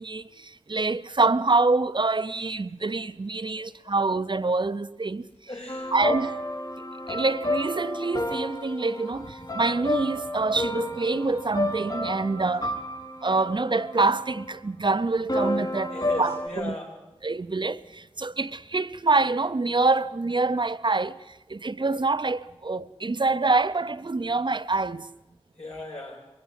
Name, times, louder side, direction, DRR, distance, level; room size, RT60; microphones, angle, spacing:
voice 1, 0.0-5.3 5.9-6.4 7.1-12.8 13.2-16.7 17.2-25.1, right 3 dB, 50° right, 0.6 m, -26 dB
voice 2, 5.5-6.0 15.9-17.0 25.6-26.2, left 1 dB, 75° left, 5.7 m, -36 dB
sound 1, 5.7-14.5 15.3-16.5, left 1 dB, 45° left, 4.7 m, -31 dB
22.0 x 17.0 x 7.5 m
wide cardioid pair, 50°, 10 cm